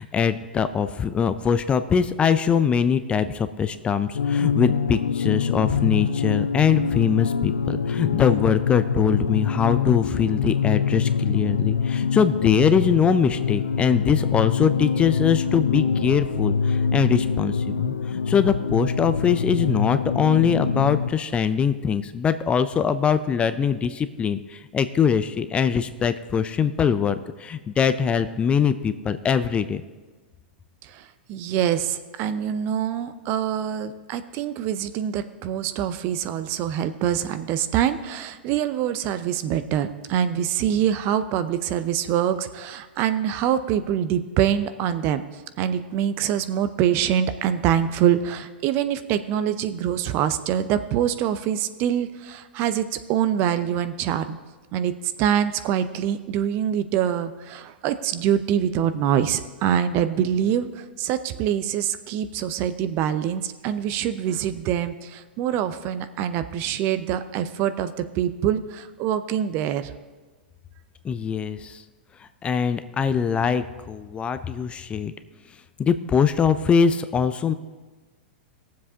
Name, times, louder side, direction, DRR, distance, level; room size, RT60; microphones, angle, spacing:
voice 1, 0.0-29.8 71.0-71.8 72.4-75.1 75.8-77.5, left 7 dB, 20° left, 12 dB, 0.4 m, -22 dB
sound 1, 4.1-21.1, left 6 dB, 80° left, 0.4 m, -24 dB
voice 2, 30.8-45.2 45.6-54.4 54.7-54.9 55.2-69.9, right 10 dB, 40° right, 12 dB, 0.6 m, -25 dB
20.0 x 7.4 x 2.8 m, 1.3 s
figure-of-eight pair, 105°, 6 cm